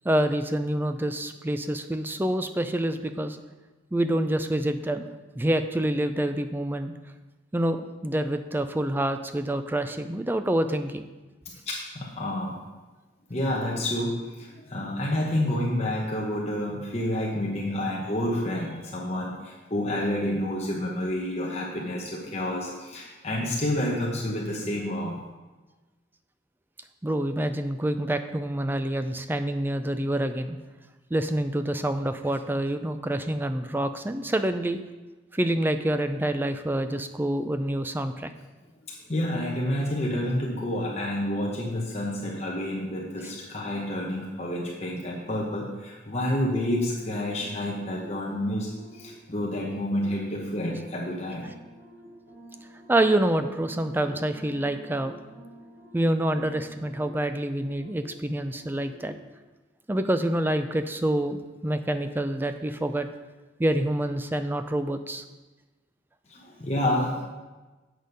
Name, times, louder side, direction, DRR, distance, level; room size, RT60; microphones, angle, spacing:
voice 1, 0.0-3.4 3.9-5.1 5.3-6.9 7.5-11.1 27.0-30.6 31.1-34.8 35.3-38.3 52.9-55.1 55.9-59.1 59.9-63.1 63.6-65.2, right 1 dB, 10° right, 9 dB, 0.4 m, -27 dB
voice 2, 11.7-12.6 13.3-25.2 38.9-51.4 66.3-67.2, left 1 dB, 35° left, -3 dB, 1.0 m, -29 dB
sound 1, 46.4-59.2, right 1 dB, 75° right, 2.9 m, -49 dB
8.1 x 6.4 x 5.3 m, 1.2 s
head